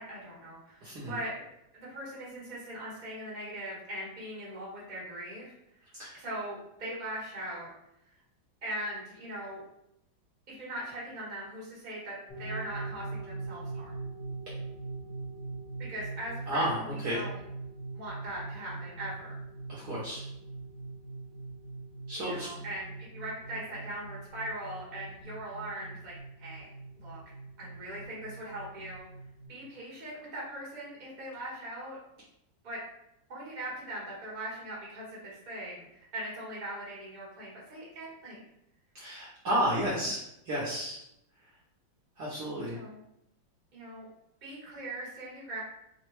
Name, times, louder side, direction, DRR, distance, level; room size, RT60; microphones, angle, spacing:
voice 1, 0.0-1.4 1.7-5.6 6.1-7.7 8.6-9.6 10.5-13.9 15.9-17.4 17.9-19.4 22.1-26.1 26.4-26.7 27.0-27.2 27.6-29.1 29.5-32.0 32.6-32.8 33.3-38.4 42.6-43.0 43.7-44.0 44.4-45.6, right 1 dB, 30° right, -7 dB, 1.0 m, -40 dB
voice 2, 0.8-1.1 6.0-6.1 16.5-17.2 19.7-20.2 22.1-22.5 38.9-41.0 42.2-42.8, equal, 65° right, -7 dB, 1.1 m, -32 dB
sound 1, 12.3-29.5, right 3 dB, 30° left, 1.2 m, -42 dB
3.6 x 2.1 x 3.0 m, 0.80 s
omnidirectional pair, 2.2 m